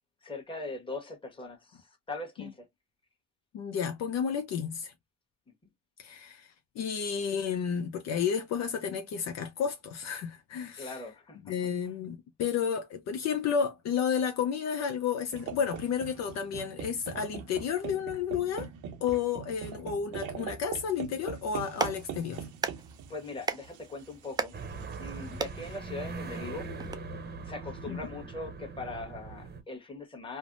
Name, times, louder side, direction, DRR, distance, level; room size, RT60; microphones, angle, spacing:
voice 1, 0.2-2.7 10.8-11.5 23.1-24.5 25.0-26.7 27.4-30.4, left 2 dB, 15° left, 1.2 m, -40 dB
voice 2, 3.5-4.9 6.0-11.0 11.5-18.7 19.0-22.5 27.9-28.0, left 7 dB, 60° left, 0.6 m, -31 dB
sound 1, 15.3-25.8, right 8 dB, 75° right, 0.7 m, -42 dB
Clapping, 21.5-27.0, right 4 dB, 15° right, 0.3 m, -38 dB
sound 2, 24.5-29.6, right 3 dB, 35° right, 0.8 m, -41 dB
3.3 x 2.1 x 2.5 m
cardioid pair, 110°, 30 cm